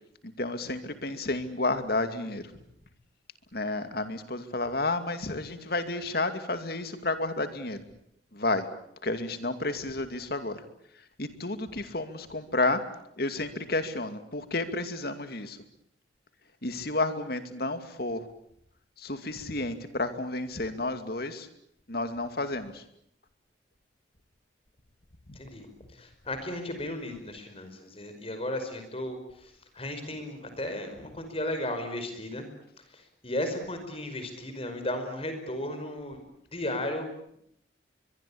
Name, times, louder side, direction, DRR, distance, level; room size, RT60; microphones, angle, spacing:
voice 1, 0.2-2.4 3.5-7.8 8.3-8.7 9.0-10.6 11.2-12.8 13.2-15.6 16.6-18.2 19.0-21.5 21.9-22.8 25.3-25.4, left 2 dB, 55° left, 9 dB, 2.5 m, -31 dB
voice 2, 25.3-25.7 25.9-32.5 32.8-36.2 36.5-37.1, left 1 dB, 30° left, 7 dB, 5.3 m, -35 dB
23.5 x 23.5 x 8.7 m, 0.73 s
head